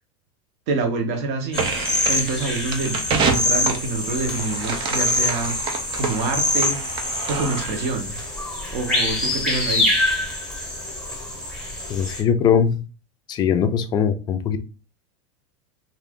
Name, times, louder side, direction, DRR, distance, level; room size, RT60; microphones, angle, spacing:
voice 1, 0.7-1.7 2.1-5.6 5.9-6.8 7.3-8.2 8.7-9.9, right 3 dB, 55° right, 0.9 m, -26 dB
sound 1, 1.5-12.2, left 2 dB, 5° left, 1.0 m, -25 dB
sound 2, 1.5-7.9, right 5 dB, 30° right, 0.5 m, -28 dB
voice 2, 11.9-12.8 13.3-14.6, left 7 dB, 25° left, 0.4 m, -20 dB
2.5 x 2.5 x 3.4 m
supercardioid pair, 140°, 17 cm